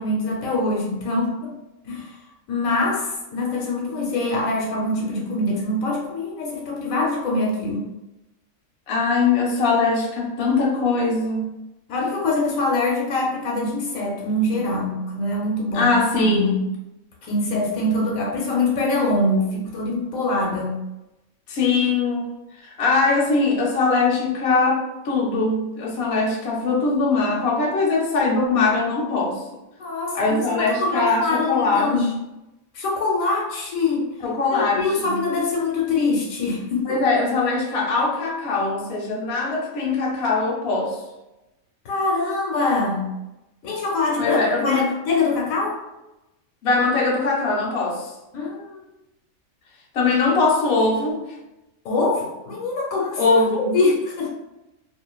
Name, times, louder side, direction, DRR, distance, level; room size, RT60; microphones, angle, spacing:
voice 1, 0.0-1.5 1.8-2.2 2.5-7.8 11.9-15.9 16.2-16.6 17.2-20.8 29.8-32.1 32.7-34.1 34.5-36.9 41.8-43.1 43.6-45.8 48.3-48.8 51.8-53.4 53.7-54.3, left 2 dB, 75° left, -2 dB, 1.1 m, -24 dB
voice 2, 8.9-11.5 15.7-16.7 21.5-22.3 22.6-29.4 30.1-31.9 34.2-35.2 36.9-41.0 44.2-44.8 46.6-48.1 49.9-51.3 53.2-53.8, left 3 dB, 55° left, -3 dB, 0.8 m, -21 dB
2.5 x 2.4 x 2.2 m, 0.96 s
omnidirectional pair, 1.4 m